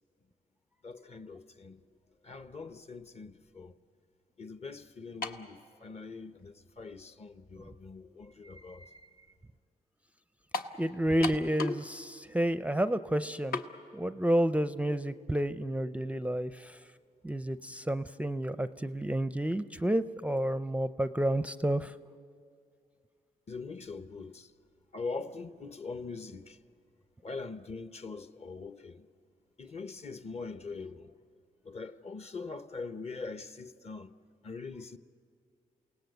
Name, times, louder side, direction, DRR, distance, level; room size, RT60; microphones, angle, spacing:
voice 1, 0.8-1.8 2.2-3.8 4.4-9.4 23.5-24.5 24.9-26.6 27.2-29.1 29.6-31.1 31.6-34.1 34.4-35.0, left 4 dB, 40° left, 0.9 m, -42 dB
sound 1, 5.2-5.5 6.4-6.5 10.5-10.8 11.2-11.9 12.2-12.3 13.5-13.7, left 3 dB, 75° left, 1.2 m, -34 dB
voice 2, 10.8-13.6 13.9-16.8 17.2-21.9, right 1 dB, 10° right, 0.5 m, -30 dB
28.5 x 18.0 x 8.0 m
cardioid pair, 80°, 16 cm